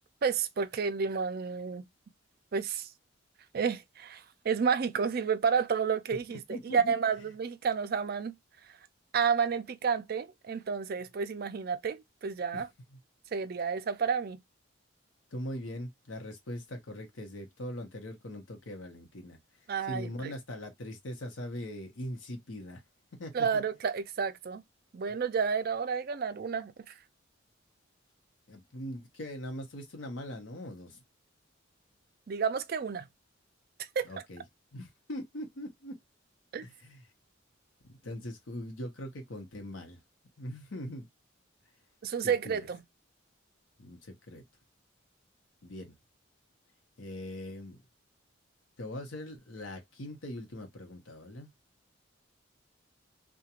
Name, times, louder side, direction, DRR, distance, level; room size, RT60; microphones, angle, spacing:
voice 1, 0.2-1.8 2.5-2.9 3.5-8.4 9.1-12.7 13.3-14.4 19.7-20.3 23.3-24.6 24.9-26.9 32.3-33.0 34.0-34.1 36.5-36.6 42.0-42.8, right 6 dB, 50° right, 0.4 m, -30 dB
voice 2, 6.5-7.0 12.5-12.6 12.9-13.0 15.3-19.4 19.9-22.8 23.2-23.6 28.5-31.0 34.0-34.4 34.7-36.0 36.6-37.0 38.0-40.0 40.4-41.1 42.2-42.7 43.8-44.4 45.6-46.0 47.0-47.8 48.8-51.5, left 1 dB, 70° left, 0.8 m, -41 dB
2.4 x 2.2 x 2.8 m
head